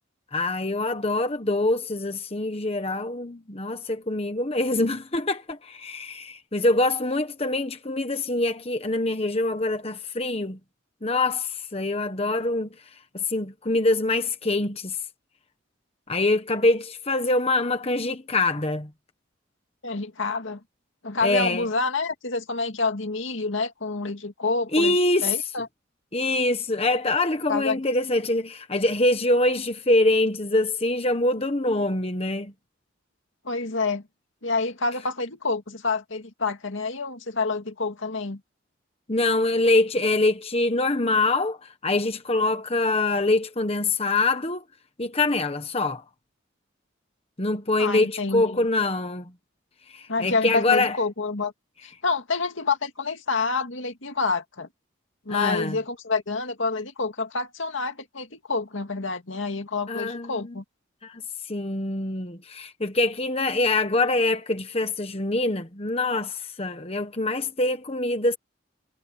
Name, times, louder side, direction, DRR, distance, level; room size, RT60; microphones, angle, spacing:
voice 1, 0.3-10.6 11.0-12.7 13.1-15.0 16.1-18.9 21.2-21.7 24.7-25.4 26.1-32.5 39.1-44.6 45.0-46.0 47.4-49.3 49.9-51.0 55.3-55.8 59.9-60.6 61.0-68.4, left 2 dB, 30° left, 1.3 m, -24 dB
voice 2, 19.8-20.6 21.0-25.7 27.5-27.8 33.4-34.0 34.4-38.4 47.8-48.7 50.1-51.5 52.0-54.7 55.3-60.6, left 3 dB, 75° left, 2.3 m, -28 dB
head